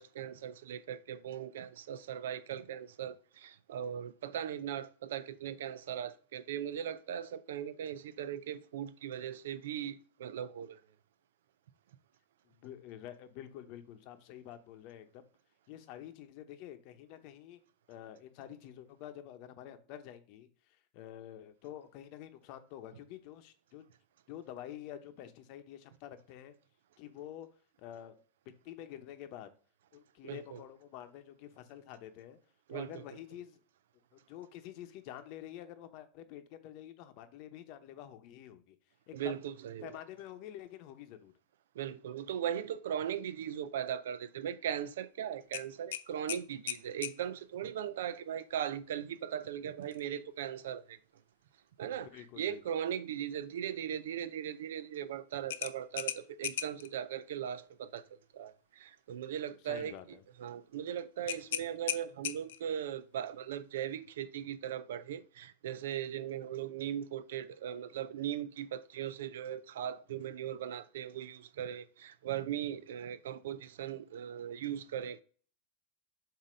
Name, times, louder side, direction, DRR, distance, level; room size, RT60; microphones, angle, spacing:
voice 1, 0.0-10.8 30.2-30.6 32.7-33.0 39.1-40.0 41.7-51.0 51.8-58.0 58.3-59.9 60.4-75.2, right 9 dB, 85° right, 0.5 m, -39 dB
voice 2, 12.4-15.2 15.7-17.6 17.9-23.8 24.3-26.5 27.0-27.5 27.8-28.1 28.6-29.5 29.9-32.4 32.7-33.6 34.1-38.8 39.1-39.3 39.8-41.3 52.1-52.6 59.6-60.2, left 11 dB, 45° left, 0.9 m, -48 dB
sound 1, 45.5-47.2 49.8-50.0 50.5-50.6 55.5-56.9 61.3-62.7, left 11 dB, 80° left, 0.5 m, -38 dB
7.5 x 2.8 x 5.1 m
supercardioid pair, 150°, 0 cm